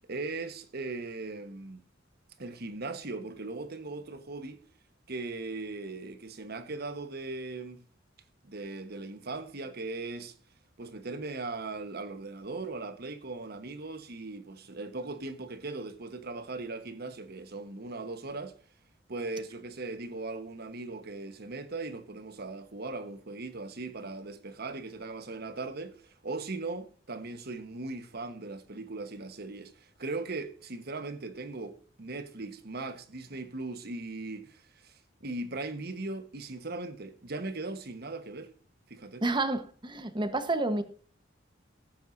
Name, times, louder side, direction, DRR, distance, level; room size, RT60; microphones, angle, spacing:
voice 1, 0.0-1.8 2.4-4.6 5.1-7.8 8.4-10.3 10.8-18.5 19.1-38.5 38.9-39.2, right 3 dB, 55° right, 1.3 m, -39 dB
voice 2, 39.2-40.8, right 2 dB, 25° right, 1.2 m, -29 dB
17.0 x 8.8 x 2.7 m
head